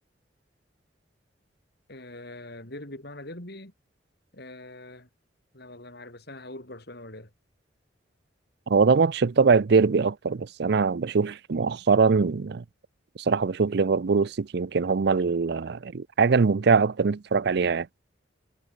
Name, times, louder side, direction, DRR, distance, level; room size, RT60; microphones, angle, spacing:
voice 1, 1.9-3.7 4.3-5.1 5.5-7.3, left 1 dB, 60° left, 5.9 m, -42 dB
voice 2, 8.7-12.6 13.2-17.9, right 5 dB, 60° right, 0.5 m, -22 dB
head